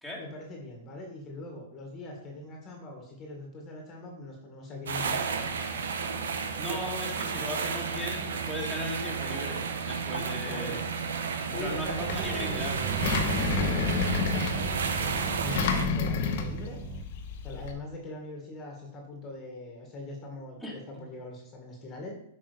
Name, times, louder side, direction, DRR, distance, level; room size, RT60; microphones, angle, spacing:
voice 1, 0.2-5.3 10.4-10.8 11.5-16.8 17.4-22.1, left 2 dB, 25° left, 1 dB, 2.0 m, -42 dB
sound 1, 4.9-15.9, right 5 dB, 85° right, 1.1 m, -32 dB
voice 2, 6.6-10.8 11.5-12.8 20.6-21.0, equal, ahead, -3 dB, 2.4 m, -37 dB
Engine, 11.6-17.7, left 6 dB, 55° left, 1.3 m, -31 dB
sound 2, 12.0-17.0, right 10 dB, 35° right, 0.8 m, -36 dB
8.9 x 5.5 x 5.1 m, 0.80 s
hypercardioid pair, 145°, 0 cm